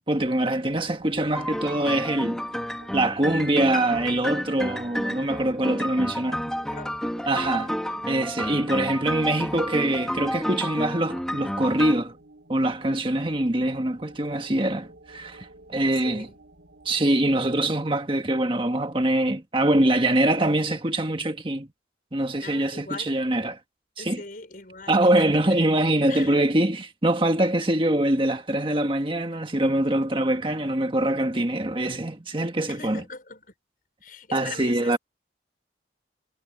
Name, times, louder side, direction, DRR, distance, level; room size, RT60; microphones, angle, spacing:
voice 1, 0.0-2.4 2.9-6.4 7.3-7.7 8.1-12.1 12.5-16.3 16.8-21.7 22.1-23.6 24.0-24.2 24.9-33.0 34.3-35.0, right 1 dB, 30° right, 1.6 m, -24 dB
sound 1, 0.7-17.8, right 2 dB, 70° right, 4.0 m, -50 dB
sound 2, 1.3-11.9, equal, 5° left, 2.1 m, -31 dB
voice 2, 6.6-8.3 15.8-16.4 22.4-23.2 24.0-25.6 26.1-26.4 32.7-33.5 34.0-35.0, left 4 dB, 50° left, 5.8 m, -41 dB
head